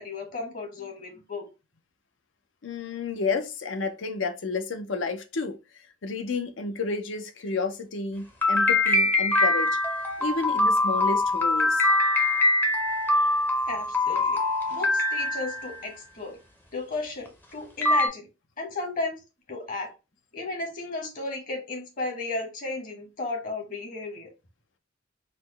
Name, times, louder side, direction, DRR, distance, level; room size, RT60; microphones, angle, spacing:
voice 1, 0.0-1.4 13.2-13.3 13.7-14.4 14.7-16.4 16.7-18.3 18.6-19.2 19.5-19.9 20.3-24.3, left 3 dB, 45° left, 1.2 m, -34 dB
voice 2, 2.6-5.6 6.0-9.8 10.2-11.9, left 4 dB, 70° left, 0.6 m, -31 dB
sound 1, 8.4-15.8 17.3-17.4 17.8-18.1, left 2 dB, 10° left, 0.6 m, -23 dB
4.1 x 2.1 x 3.2 m
head